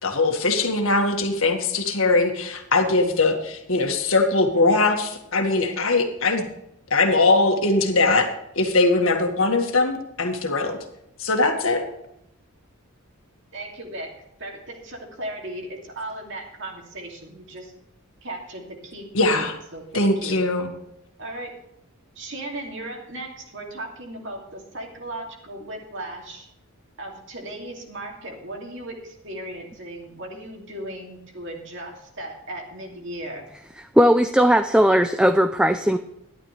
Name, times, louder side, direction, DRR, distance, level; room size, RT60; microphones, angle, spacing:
voice 1, 0.0-6.5 6.9-8.3 8.6-10.8 11.2-11.8 19.1-19.5 19.9-20.7, left 3 dB, 65° left, 3 dB, 1.8 m, -21 dB
voice 2, 13.5-17.7 18.2-20.4 21.2-21.6 22.2-26.5 27.0-33.5, right 1 dB, 55° right, 0 dB, 2.7 m, -36 dB
voice 3, 34.0-36.0, equal, 5° right, 8 dB, 0.4 m, -17 dB
12.5 x 11.0 x 3.3 m, 0.81 s
head